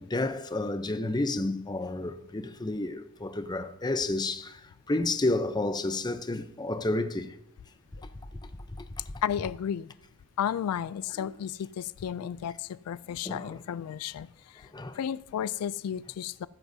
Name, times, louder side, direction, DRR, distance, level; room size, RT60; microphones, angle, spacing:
voice 1, 0.0-4.6 4.9-7.3 13.2-13.5 14.7-15.0, left 2 dB, 20° left, 0.6 m, -30 dB
voice 2, 9.2-9.9 10.4-14.7 14.9-16.5, left 9 dB, 90° left, 0.3 m, -33 dB
15.0 x 13.0 x 2.7 m
head